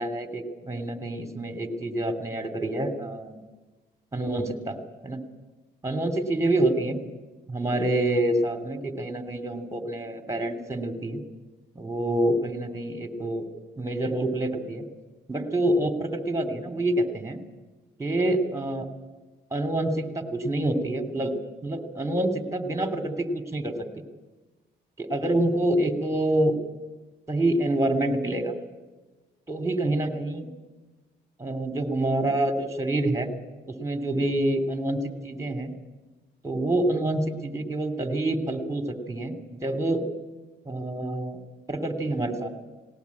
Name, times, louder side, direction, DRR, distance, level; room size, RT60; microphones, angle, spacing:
voice 1, 0.0-3.4 4.1-4.8 5.0-5.2 5.8-7.1 7.5-11.2 11.7-13.5 13.8-14.8 15.3-17.4 18.0-18.9 19.5-21.3 21.6-23.7 25.0-26.5 27.3-28.5 29.5-30.5 31.4-33.3 33.7-35.7 36.4-40.0 40.6-41.4 41.7-42.5, right 1 dB, 15° right, 7 dB, 3.2 m, -27 dB
19.5 x 18.0 x 8.7 m, 1.2 s
cardioid pair, 90°, 20 cm